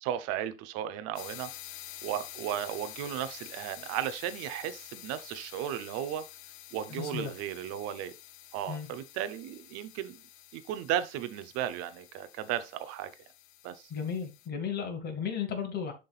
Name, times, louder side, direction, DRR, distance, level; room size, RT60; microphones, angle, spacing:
voice 1, 0.0-1.5 2.0-6.2 6.7-8.1 8.5-10.2 10.5-13.1 13.6-13.9, right 11 dB, 45° right, 0.9 m, -35 dB
sound 1, 1.2-14.5, left 12 dB, 70° left, 1.0 m, -49 dB
voice 2, 6.9-7.3 8.7-8.9 13.9-15.9, left 7 dB, 30° left, 2.2 m, -34 dB
11.0 x 3.8 x 2.4 m
hypercardioid pair, 115°, 34 cm